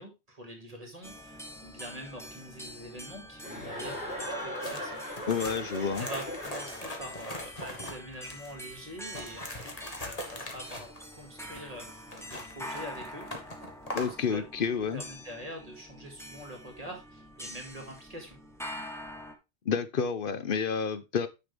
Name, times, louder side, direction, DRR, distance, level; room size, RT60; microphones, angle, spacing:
voice 1, 0.0-5.0 6.0-13.2 13.9-18.4, equal, 35° right, 2 dB, 2.2 m, -45 dB
sound 1, 1.0-19.3, equal, 5° left, 1.1 m, -46 dB
Chuckle chortle, 3.4-7.2, equal, 90° left, 4.0 m, -39 dB
sound 2, 4.5-8.5 9.0-14.2, left 1 dB, 35° left, 1.6 m, -41 dB
voice 2, 5.3-6.1 13.9-15.0 19.7-21.3, left 6 dB, 55° left, 12 dB, 0.9 m, -29 dB
9.6 x 6.0 x 3.4 m, 0.25 s
omnidirectional pair, 1.1 m